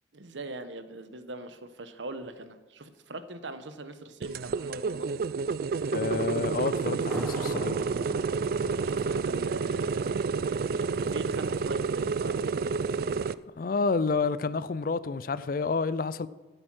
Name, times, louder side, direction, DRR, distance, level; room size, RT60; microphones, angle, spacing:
voice 1, 0.1-5.2 8.8-10.2 10.5-12.4, right 2 dB, 90° right, 11 dB, 1.0 m, -41 dB
sound 1, 4.2-13.3, right 4 dB, 50° right, 0.3 m, -29 dB
voice 2, 5.9-7.8 13.6-16.3, left 4 dB, 50° left, 16 dB, 0.4 m, -29 dB
sound 2, 7.1-10.4, equal, ahead, 1.3 m, -45 dB
15.0 x 7.8 x 6.2 m, 1.2 s
head